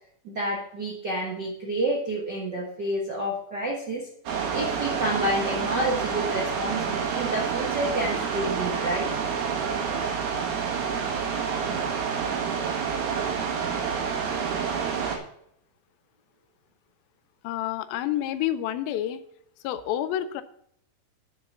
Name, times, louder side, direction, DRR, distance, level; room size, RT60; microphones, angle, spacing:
voice 1, 0.2-4.1 4.5-9.1, right 1 dB, 60° right, -2 dB, 1.1 m, -29 dB
sound 1, 4.3-15.2, right 6 dB, 85° right, 3.6 m, -28 dB
voice 2, 17.4-19.2 19.6-20.4, left 12 dB, 80° left, 12 dB, 2.4 m, -28 dB
8.0 x 6.9 x 6.9 m, 0.72 s
omnidirectional pair, 4.3 m